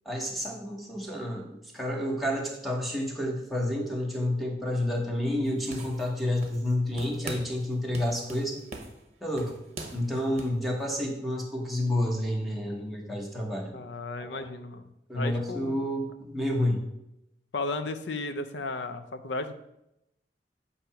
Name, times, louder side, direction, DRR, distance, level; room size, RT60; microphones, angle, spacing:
voice 1, 0.0-8.6 9.2-9.6 9.9-13.8 14.3-14.5 15.1-16.8, left 1 dB, ahead, -2 dB, 1.0 m, -30 dB
sound 1, 5.4-6.7 7.0-7.6 7.9-10.6, right 2 dB, 40° right, 0.8 m, -42 dB
voice 2, 13.7-14.9 15.1-15.8 17.5-19.5, left 3 dB, 90° left, 9 dB, 0.6 m, -34 dB
7.7 x 2.8 x 5.6 m, 0.84 s
head